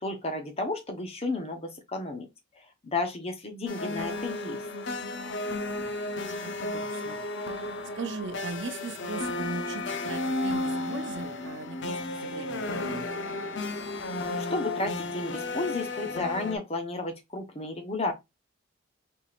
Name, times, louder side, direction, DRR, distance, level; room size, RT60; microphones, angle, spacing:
voice 1, 0.0-2.3 2.8-4.6 14.4-18.1, left 3 dB, 30° left, 0.8 m, -32 dB
sound 1, 3.7-16.6, left 2 dB, 60° left, 0.6 m, -33 dB
voice 2, 5.8-13.2, right 3 dB, 60° right, 0.6 m, -39 dB
4.3 x 3.3 x 2.4 m
head